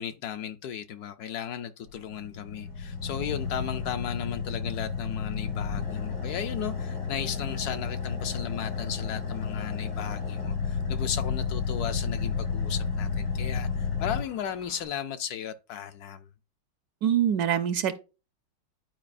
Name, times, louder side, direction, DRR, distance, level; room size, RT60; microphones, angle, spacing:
voice 1, 0.0-16.3, left 9 dB, 70° left, 1.0 m, -35 dB
Car / Idling, 1.9-14.9, left 5 dB, 85° left, 3.6 m, -32 dB
voice 2, 17.0-17.9, right 9 dB, 70° right, 1.0 m, -24 dB
10.5 x 4.7 x 2.5 m
omnidirectional pair, 1.9 m